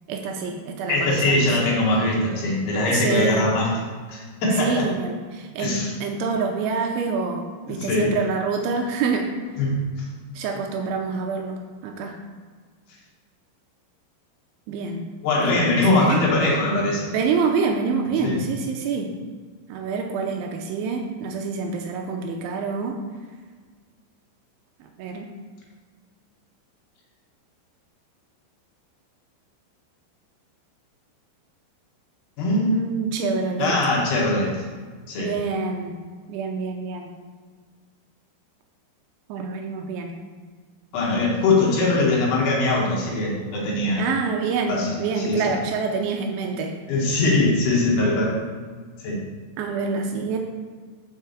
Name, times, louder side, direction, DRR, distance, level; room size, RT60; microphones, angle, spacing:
voice 1, 0.1-1.6 2.9-3.4 4.6-9.3 10.4-12.2 14.7-15.1 15.4-16.2 17.1-19.1 19.7-23.0 24.8-25.3 32.7-33.8 35.2-36.0 36.3-37.1 39.3-40.1 44.0-46.7 49.6-50.4, right 5 dB, 80° right, 3 dB, 2.9 m, -27 dB
voice 2, 0.9-3.7 4.1-4.9 5.6-5.9 7.7-8.2 9.6-10.1 15.2-17.1 18.2-18.4 32.4-32.8 33.6-34.6 35.1-35.3 40.9-44.0 44.7-45.4 46.9-48.4 49.0-49.2, left 2 dB, 65° left, -4 dB, 3.1 m, -21 dB
6.6 x 5.9 x 7.1 m, 1.5 s
omnidirectional pair, 5.6 m